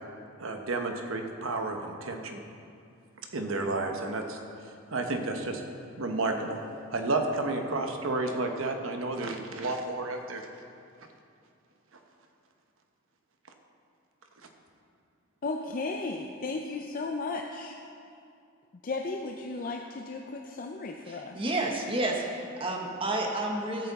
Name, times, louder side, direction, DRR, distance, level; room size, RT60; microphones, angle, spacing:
voice 1, 0.4-2.4 3.3-4.4 4.9-5.6 6.0-6.6 6.9-10.5, right 2 dB, 75° right, 4 dB, 1.0 m, -31 dB
voice 2, 15.4-17.8 18.8-21.4, left 3 dB, 45° left, 2 dB, 0.5 m, -35 dB
voice 3, 21.1-23.9, right 2 dB, 25° right, 0 dB, 1.1 m, -30 dB
13.0 x 8.2 x 4.1 m, 2.5 s
head